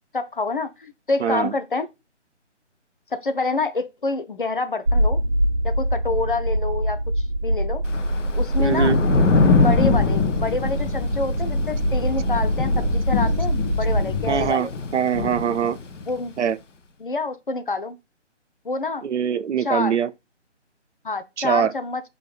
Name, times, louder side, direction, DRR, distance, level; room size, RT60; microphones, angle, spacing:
voice 1, 0.1-1.9 3.1-5.2 5.6-7.8 8.4-8.9 9.5-14.7 16.1-16.3 17.0-18.0 18.6-19.0 19.6-20.0 21.0-22.0, left 3 dB, 50° left, 0.4 m, -27 dB
voice 2, 1.2-1.5 8.6-9.0 14.3-15.8 16.4-16.6 19.0-20.1 21.4-21.7, right 7 dB, 70° right, 0.5 m, -23 dB
sound 1, 4.9-14.1, equal, 90° right, 1.5 m, -23 dB
Thunder / Rain, 7.8-16.2, left 3 dB, 85° left, 0.6 m, -25 dB
sound 2, 9.1-14.5, left 4 dB, 15° right, 0.5 m, -28 dB
5.4 x 3.4 x 2.3 m
figure-of-eight pair, 150°, 36 cm